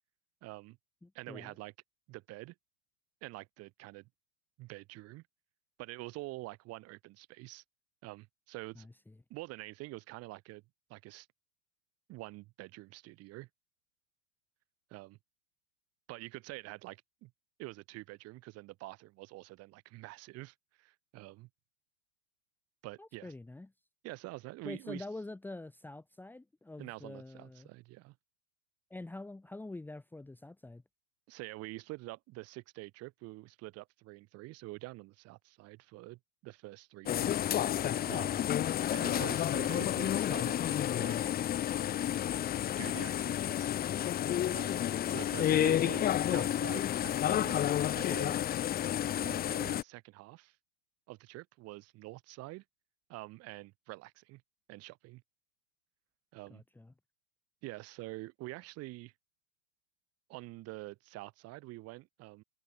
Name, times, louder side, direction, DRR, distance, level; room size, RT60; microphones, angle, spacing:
voice 1, 0.4-0.8 1.1-1.7 2.1-2.5 3.2-4.1 4.6-5.2 5.8-7.6 8.0-8.9 9.3-10.6 10.9-11.3 12.1-13.5 14.9-15.2 16.1-17.3 17.6-21.5 22.8-23.3 24.0-25.0 26.8-28.1 31.3-37.4 38.1-38.4 38.9-41.3 42.8-43.7 44.5-44.8 45.1-48.4 49.2-50.6 51.1-52.6 53.1-54.4 54.7-55.2 56.3-56.6 57.6-59.1 60.3-62.4, right 20 dB, 35° right, 3.5 m, -46 dB
voice 2, 1.0-1.5 8.7-9.1 23.0-23.7 24.6-27.7 28.9-30.8 56.5-56.9, left 2 dB, 5° left, 1.7 m, -46 dB
sound 1, 37.1-49.8, left 11 dB, 20° left, 1.5 m, -31 dB
hypercardioid pair, 110°, 41 cm